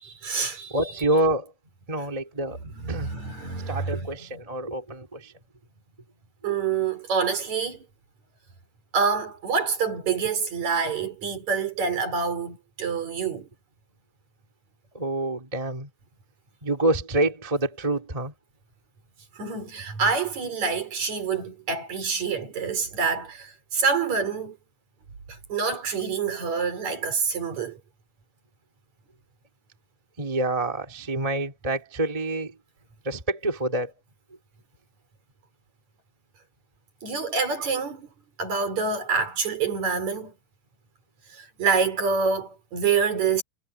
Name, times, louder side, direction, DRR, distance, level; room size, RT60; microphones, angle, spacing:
voice 1, 0.0-0.8 2.7-4.1 6.4-7.8 8.9-13.5 19.4-24.6 25.3-27.8 37.0-38.1 38.4-40.3 41.3-43.4, right 5 dB, 40° right, 4.7 m, -27 dB
voice 2, 0.7-1.5 1.9-2.6 2.9-3.1 3.7-5.3 6.5-6.6 14.9-15.9 16.6-18.3 30.2-32.5 33.0-33.9 37.6-37.7, right 1 dB, 15° right, 1.4 m, -27 dB
omnidirectional pair, 5.6 m